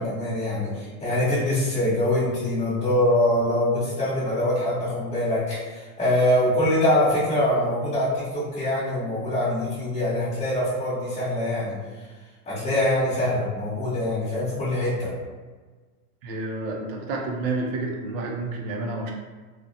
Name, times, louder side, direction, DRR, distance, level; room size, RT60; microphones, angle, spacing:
voice 1, 0.0-11.7 12.5-15.1, left 1 dB, 15° left, -11 dB, 0.9 m, -24 dB
voice 2, 16.2-19.1, right 2 dB, 45° right, 0 dB, 0.4 m, -29 dB
2.4 x 2.1 x 2.6 m, 1.3 s
supercardioid pair, 150°, 44 cm